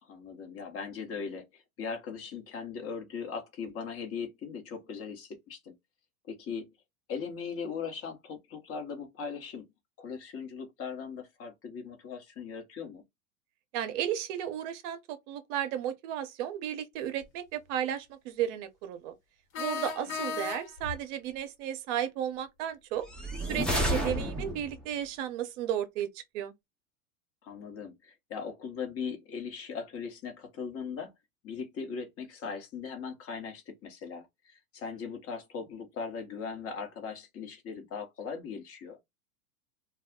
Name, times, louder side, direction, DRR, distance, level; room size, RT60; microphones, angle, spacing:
voice 1, 0.0-5.7 6.3-6.7 7.1-9.7 10.0-13.0 20.2-20.4 27.4-31.1 31.4-39.0, left 6 dB, 30° left, 1.0 m, -39 dB
voice 2, 13.7-19.1 19.6-23.1 23.5-26.5, right 10 dB, 55° right, 0.7 m, -34 dB
sound 1, 17.2-17.3 19.5-21.0, left 5 dB, 65° left, 1.2 m, -35 dB
sound 2, 23.0-24.8, equal, ahead, 0.3 m, -31 dB
2.3 x 2.0 x 3.5 m
hypercardioid pair, 110°, 44 cm